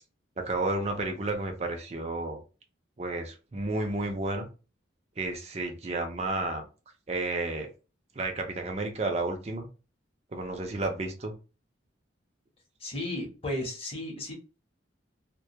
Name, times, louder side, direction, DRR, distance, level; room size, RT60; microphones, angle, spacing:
voice 1, 0.4-2.4 3.0-4.5 5.2-6.6 7.1-7.7 8.2-9.7 10.3-11.3, right 2 dB, 35° right, 4 dB, 0.5 m, -31 dB
voice 2, 12.8-14.3, left 1 dB, 30° left, -1 dB, 0.8 m, -34 dB
2.3 x 2.2 x 2.7 m, 0.32 s
head